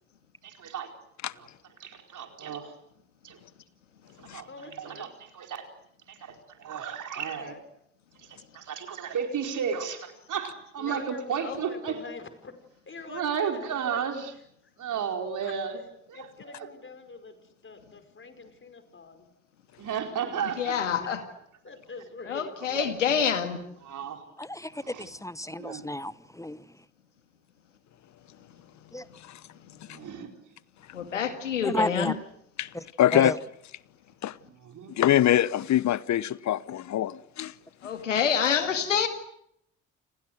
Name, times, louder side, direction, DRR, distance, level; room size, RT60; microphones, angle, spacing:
voice 1, 0.4-0.9 1.4-1.5 1.8-2.7 3.2-3.4 4.2-5.1 5.3-5.6 6.1-7.5 8.3-12.0 13.1-14.3 14.8-15.8 16.1-16.3 16.5-16.7 19.8-21.1 22.7-22.9 23.8-24.2 24.8-25.1 25.6-25.8 29.9-30.3 34.6-34.9, right 7 dB, 55° right, 4.6 m, -33 dB
voice 2, 4.5-5.1 7.4-7.6 10.8-12.5 12.9-14.1 15.4-15.5 16.1-17.4 17.6-19.3 21.6-22.6, left 4 dB, 35° left, 5.3 m, -44 dB
voice 3, 20.4-21.2 22.3-23.6 30.9-32.2 37.8-39.1, left 7 dB, 90° left, 2.0 m, -27 dB
voice 4, 24.4-26.6 28.9-29.0 31.6-32.1 32.7-32.8 33.1-33.4, left 1 dB, 10° left, 1.1 m, -32 dB
voice 5, 33.0-33.4 34.2-34.4 34.9-37.5, left 12 dB, 50° left, 1.0 m, -24 dB
29.5 x 26.5 x 6.6 m
figure-of-eight pair, 45°, 36 cm